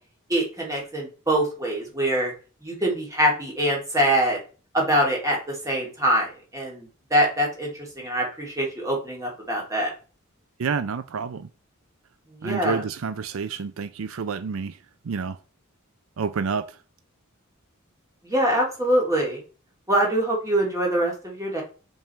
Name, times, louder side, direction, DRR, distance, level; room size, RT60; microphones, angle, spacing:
voice 1, 0.3-2.3 2.6-4.4 4.7-9.9 12.4-12.8 18.2-19.4 19.9-21.6, right 1 dB, 15° right, 2.9 m, -24 dB
voice 2, 10.6-11.5 12.4-14.8 15.1-15.4 16.2-16.7, right 5 dB, 80° right, 0.5 m, -29 dB
6.0 x 5.4 x 4.5 m
head